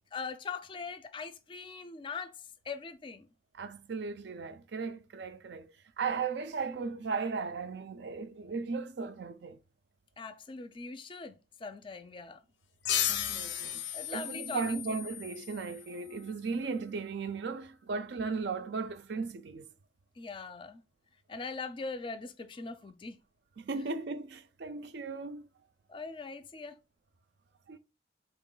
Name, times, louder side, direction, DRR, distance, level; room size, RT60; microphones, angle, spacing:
voice 1, 0.0-2.4 2.7-3.3 10.2-12.4 13.9-14.8 20.2-20.8 21.3-23.2 25.9-26.8, left 4 dB, 25° left, 0.4 m, -41 dB
voice 2, 3.5-9.6 13.1-13.8 14.1-19.7 23.6-25.4 27.7-27.8, right 4 dB, 70° right, 0.4 m, -36 dB
sound 1, 12.8-16.1, left 10 dB, 85° left, 0.5 m, -35 dB
4.0 x 3.0 x 3.8 m
head